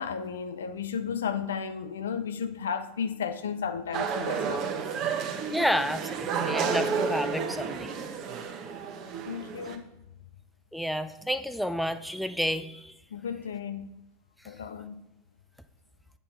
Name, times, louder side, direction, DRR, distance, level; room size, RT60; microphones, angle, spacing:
voice 1, 0.0-4.6 9.3-9.9 13.1-13.9 14.4-15.0, left 7 dB, 80° left, 0.5 m, -33 dB
sound 1, 3.9-9.8, right 6 dB, 50° right, 1.0 m, -31 dB
voice 2, 5.5-8.0 10.7-12.9, equal, ahead, 0.5 m, -30 dB
8.5 x 5.4 x 4.2 m
hypercardioid pair, 85°, 0 cm